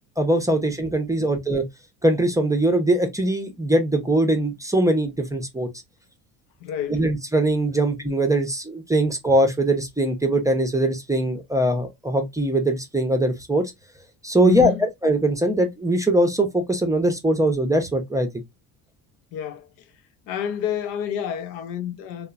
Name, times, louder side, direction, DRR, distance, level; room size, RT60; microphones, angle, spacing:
voice 1, 0.2-1.6 2.0-5.7 6.9-13.7 14.2-18.3, right 1 dB, 10° right, 0.5 m, -21 dB
voice 2, 6.6-7.0 7.7-7.8 14.4-14.9 19.3-19.7 20.3-22.3, left 9 dB, 75° left, 0.6 m, -29 dB
2.9 x 2.1 x 2.3 m
supercardioid pair, 90°, 43 cm